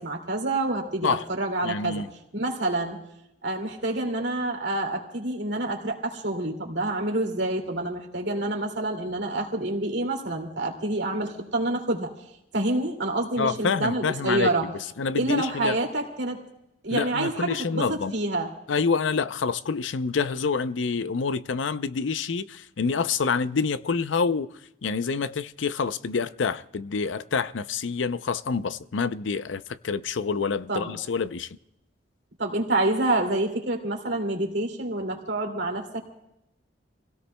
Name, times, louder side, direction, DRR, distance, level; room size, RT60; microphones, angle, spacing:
voice 1, 0.0-2.0 2.3-3.0 3.4-12.1 12.5-14.7 15.1-16.4 16.8-18.5 30.7-30.9 32.4-36.0, right 2 dB, 65° right, 2.4 m, -27 dB
voice 2, 1.6-2.1 13.4-15.8 16.9-18.1 18.7-24.5 24.8-31.5, left 5 dB, 90° left, 0.5 m, -27 dB
28.0 x 17.0 x 2.2 m
head